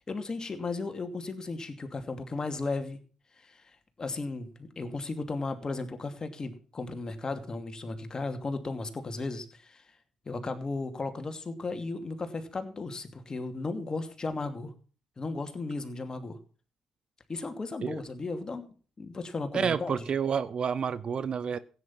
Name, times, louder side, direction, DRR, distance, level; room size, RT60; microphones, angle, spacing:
voice 1, 0.1-3.0 3.4-3.6 4.0-9.8 10.3-14.7 15.2-16.4 17.3-18.7 19.0-20.0, left 3 dB, 35° left, 7 dB, 2.6 m, -35 dB
voice 2, 19.5-21.6, right 7 dB, 50° right, 16 dB, 0.8 m, -29 dB
16.0 x 9.2 x 5.8 m, 0.39 s
hypercardioid pair, 45°, 2 cm